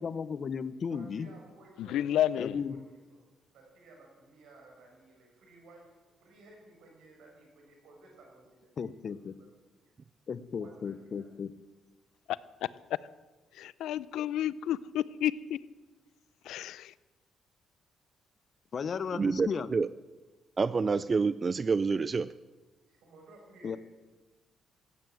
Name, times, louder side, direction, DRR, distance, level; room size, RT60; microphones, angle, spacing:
voice 1, 0.0-1.3 2.4-2.8 8.8-9.4 10.3-11.5 18.7-19.7 23.6-23.8, left 6 dB, 50° left, 15 dB, 0.7 m, -35 dB
voice 2, 0.9-2.0 2.3-3.2 3.5-9.9 10.6-11.3 22.9-23.8, right 2 dB, 80° right, 0 dB, 5.5 m, -56 dB
voice 3, 1.8-2.6 12.3-12.4 13.5-15.6 16.4-16.9, left 11 dB, 85° left, 19 dB, 0.5 m, -31 dB
voice 4, 19.1-19.9 20.6-22.3, right 4 dB, 35° right, 16 dB, 0.4 m, -28 dB
15.0 x 9.3 x 7.8 m, 1.2 s
cardioid pair, 90°, 0 cm